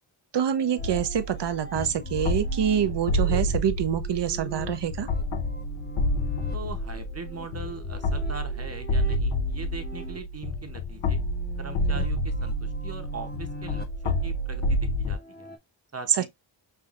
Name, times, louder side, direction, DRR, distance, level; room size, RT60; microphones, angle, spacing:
voice 1, 0.3-5.1 16.1-16.3, right 9 dB, 60° right, 0.7 m, -26 dB
sound 1, 0.5-15.6, left 3 dB, 20° left, 0.9 m, -44 dB
sound 2, 0.8-15.2, left 1 dB, 75° left, 0.8 m, -29 dB
voice 2, 6.5-11.2 11.6-15.5 15.9-16.3, right 4 dB, 30° right, 0.9 m, -41 dB
5.6 x 2.7 x 2.4 m
wide cardioid pair, 110°, 47 cm